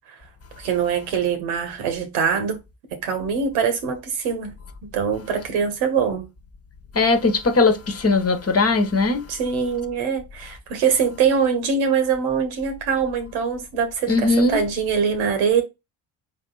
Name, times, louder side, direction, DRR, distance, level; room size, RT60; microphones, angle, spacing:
voice 1, 0.6-2.6 2.9-4.5 4.8-6.3 9.3-15.6, right 6 dB, 80° right, 1.3 m, -23 dB
voice 2, 6.9-9.2 14.1-14.6, left 3 dB, 30° left, 1.2 m, -19 dB
3.7 x 3.7 x 3.9 m
hypercardioid pair, 50°, 46 cm